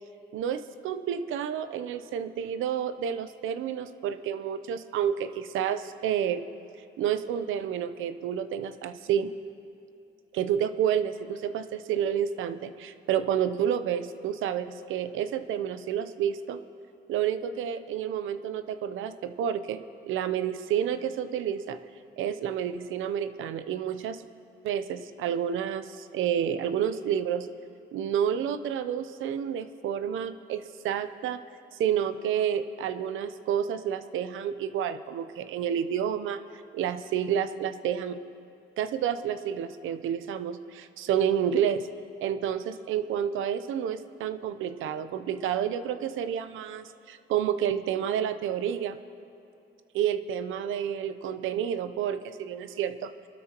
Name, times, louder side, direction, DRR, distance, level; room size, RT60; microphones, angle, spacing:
voice 1, 0.3-6.4 7.0-9.3 10.3-16.6 17.1-21.8 22.2-24.2 24.6-27.5 27.9-31.4 31.8-36.4 36.7-38.2 38.8-41.8 42.2-49.0 49.9-53.1, right 9 dB, 85° right, 11 dB, 0.7 m, -29 dB
24.5 x 12.5 x 3.0 m, 2.7 s
cardioid pair, 90°, 20 cm